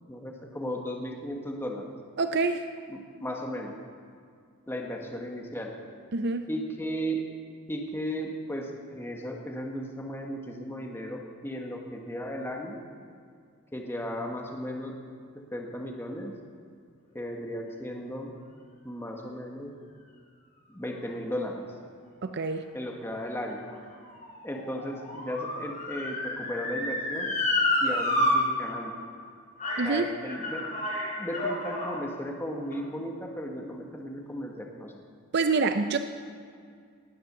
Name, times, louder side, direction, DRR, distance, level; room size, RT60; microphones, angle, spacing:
voice 1, 0.1-1.8 2.9-3.8 4.7-5.7 6.5-7.2 7.7-8.7 9.0-12.8 13.7-14.9 15.3-16.3 17.1-18.3 18.8-19.7 20.7-21.6 22.7-23.6 24.4-27.3 27.8-28.9 29.8-30.6 31.2-35.0, equal, 10° left, 0 dB, 1.3 m, -35 dB
voice 2, 2.2-2.7 6.1-6.4 22.2-22.7 29.8-30.1 35.3-36.0, right 4 dB, 55° right, 8 dB, 0.6 m, -26 dB
Motor vehicle (road) / Siren, 23.1-28.3 28.7-28.8 29.6-29.9 30.3-32.0 32.7-32.8, left 1 dB, 40° left, 4.5 m, -30 dB
19.0 x 7.9 x 6.7 m, 2.2 s
head